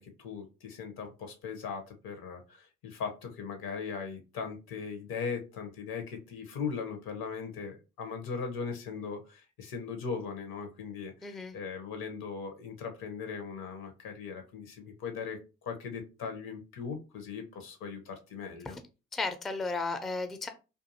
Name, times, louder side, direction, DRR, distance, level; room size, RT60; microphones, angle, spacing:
voice 1, 0.0-18.7, left 5 dB, 65° left, 0.8 m, -39 dB
voice 2, 11.2-11.6 18.7-18.8 19.1-20.5, left 3 dB, ahead, 0.4 m, -34 dB
2.5 x 2.5 x 2.6 m
hypercardioid pair, 40°, 39 cm